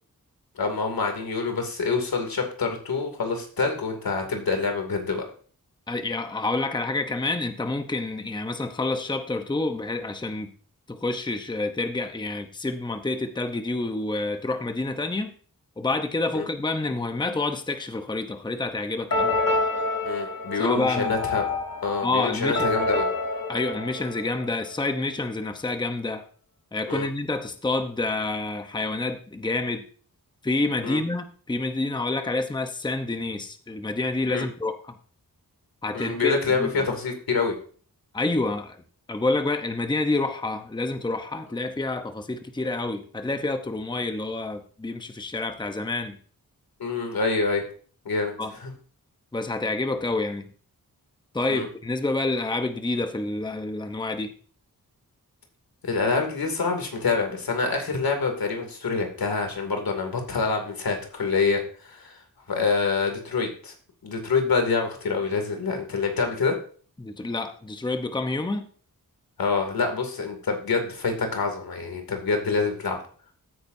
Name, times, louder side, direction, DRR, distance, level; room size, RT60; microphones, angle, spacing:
voice 1, 0.6-5.2 16.3-16.4 20.0-21.5 21.8-23.1 26.9-27.1 30.8-31.0 34.3-34.5 35.9-37.5 46.8-47.6 48.0-48.4 51.5-51.7 55.8-62.2 62.5-63.7 64.0-66.6 69.4-73.0, left 4 dB, 80° left, 4 dB, 2.6 m, -26 dB
voice 2, 5.9-10.5 10.9-15.3 15.8-19.4 20.5-21.2 22.0-22.7 23.5-26.2 26.7-29.8 30.4-34.9 35.8-36.9 38.1-38.8 39.1-46.2 48.4-48.5 49.3-50.5 51.3-54.3 67.0-68.7, left 2 dB, 15° left, 7 dB, 0.8 m, -28 dB
sound 1, 19.1-24.9, left 3 dB, 65° left, 3.1 m, -28 dB
14.5 x 8.9 x 2.7 m, 0.43 s
wide cardioid pair, 100°, 35 cm